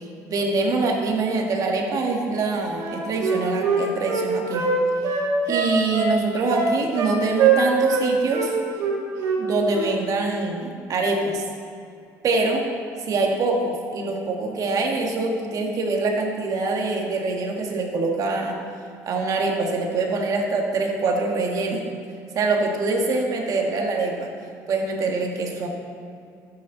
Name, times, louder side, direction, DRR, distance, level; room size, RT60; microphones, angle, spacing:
voice 1, 0.3-4.6 5.5-8.5 9.4-11.4 12.2-12.7 13.1-18.6 19.1-21.8 22.3-24.3 24.7-25.7, right 3 dB, 55° right, 1 dB, 1.9 m, -24 dB
Wind instrument woodwind instrument, 2.8-4.7 5.0-6.1 6.5-7.1 7.4-8.0 8.3-8.5 8.8-9.4 9.7-9.9, right 6 dB, 70° right, 2.8 m, -22 dB
12.0 x 8.8 x 4.1 m, 2.4 s
supercardioid pair, 90°, 7 cm